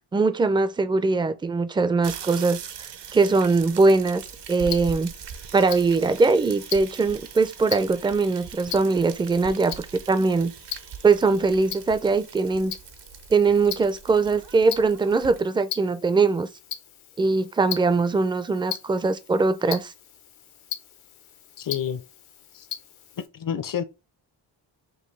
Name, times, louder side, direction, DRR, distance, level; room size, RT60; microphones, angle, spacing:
voice 1, 0.1-2.6 3.1-4.2 4.5-5.1 5.5-10.5 11.0-12.7 13.3-16.5 17.2-19.9, right 3 dB, 10° right, 0.4 m, -21 dB
sound 1, 2.0-15.4, right 8 dB, 60° right, 0.7 m, -41 dB
Tick-tock, 4.2-23.3, left 10 dB, 80° left, 0.8 m, -40 dB
voice 2, 21.6-22.0 22.5-22.7 23.3-23.8, left 8 dB, 45° left, 0.6 m, -28 dB
5.4 x 2.3 x 3.2 m
cardioid pair, 85°, 48 cm